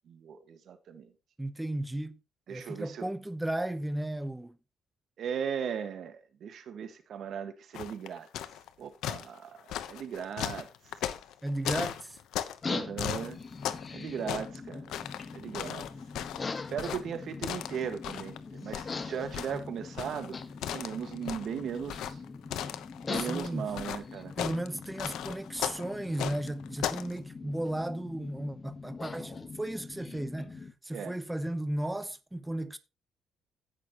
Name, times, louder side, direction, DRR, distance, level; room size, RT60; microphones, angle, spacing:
voice 1, 0.1-1.1 2.5-3.1 5.2-8.3 8.8-10.7 12.7-13.4 13.9-14.9 15.3-15.9 16.5-20.4 20.7-22.2 23.1-24.3 30.9-31.2, right 7 dB, 65° right, 1.6 m, -37 dB
voice 2, 1.4-2.2 2.5-4.6 11.4-12.2 23.1-23.7 24.4-32.8, right 1 dB, 10° right, 0.8 m, -35 dB
sound 1, 7.7-8.7 9.0-12.6 13.0-13.9 14.2-18.4 18.7-27.1, left 11 dB, 85° left, 0.9 m, -37 dB
sound 2, 12.6-30.7, left 4 dB, 35° left, 1.3 m, -42 dB
16.5 x 6.4 x 3.0 m
cardioid pair, 90°, 0 cm